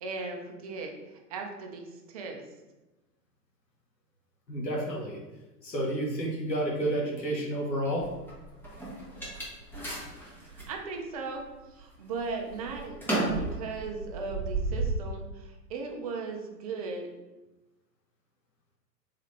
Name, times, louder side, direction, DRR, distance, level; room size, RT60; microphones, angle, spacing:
voice 1, 0.0-2.4 10.5-11.4 11.7-13.0 13.3-17.1, right 4 dB, 25° right, 2 dB, 0.4 m, -37 dB
voice 2, 4.5-5.2 5.6-8.1 9.1-9.2, right 1 dB, 85° left, -2 dB, 1.4 m, -30 dB
sound 1, 8.0-10.7 11.3-11.8 12.2-14.9, right 2 dB, 5° left, 0.7 m, -33 dB
3.7 x 3.7 x 3.3 m, 1.1 s
figure-of-eight pair, 110°, 49 cm